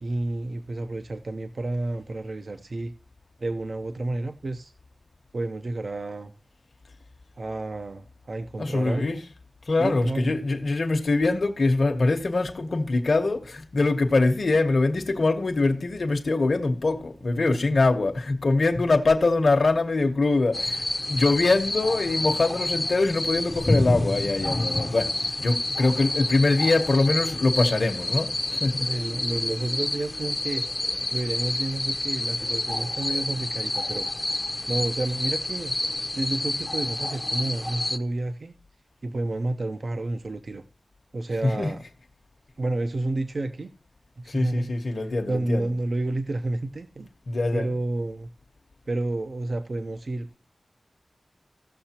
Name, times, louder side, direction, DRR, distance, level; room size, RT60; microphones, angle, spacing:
voice 1, 0.0-2.9 3.4-4.7 5.3-6.3 7.4-9.2 9.8-10.3 17.4-17.6 28.9-30.6 31.1-34.1 34.7-35.7 36.1-38.5 39.0-40.6 41.1-41.8 42.6-43.7 44.2-44.7 45.0-47.1 47.5-48.3 48.9-50.3, right 2 dB, 60° right, 0.6 m, -30 dB
voice 2, 8.6-9.2 9.7-25.1 25.4-28.9 41.6-41.7 44.3-45.7 47.3-47.7, left 3 dB, 65° left, 0.9 m, -23 dB
sound 1, 20.5-38.0, left 1 dB, 20° left, 0.6 m, -28 dB
16.0 x 6.6 x 2.9 m
wide cardioid pair, 90°, 0 cm